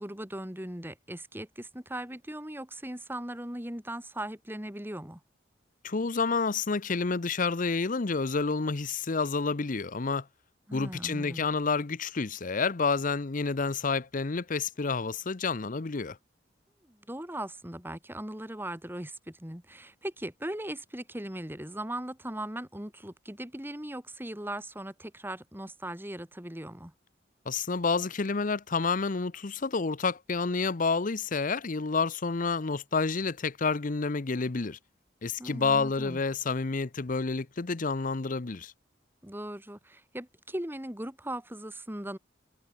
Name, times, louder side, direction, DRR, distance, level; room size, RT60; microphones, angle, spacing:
voice 1, 0.0-5.2 10.7-11.5 16.9-26.9 35.4-36.2 39.2-42.2, right 1 dB, 10° right, 3.5 m, -39 dB
voice 2, 5.8-10.3 10.7-16.2 27.5-34.8 35.2-38.7, left 4 dB, 45° left, 0.7 m, -29 dB
head